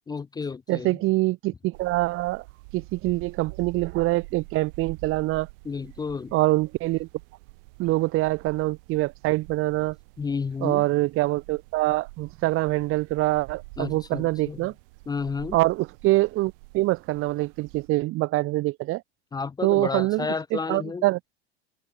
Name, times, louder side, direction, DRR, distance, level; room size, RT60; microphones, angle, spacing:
voice 1, 0.1-1.0 5.6-6.3 10.2-10.8 13.8-14.7 15.1-15.6 19.3-21.0, left 5 dB, 15° left, 0.5 m, -31 dB
voice 2, 0.7-2.4 2.7-5.5 6.3-7.1 7.8-10.0 10.6-14.7 15.5-19.0 19.6-21.2, right 19 dB, 45° right, 0.9 m, -25 dB
sound 1, 1.7-17.9, right 26 dB, 60° right, 6.2 m, -46 dB
open air
hypercardioid pair, 85°, 31 cm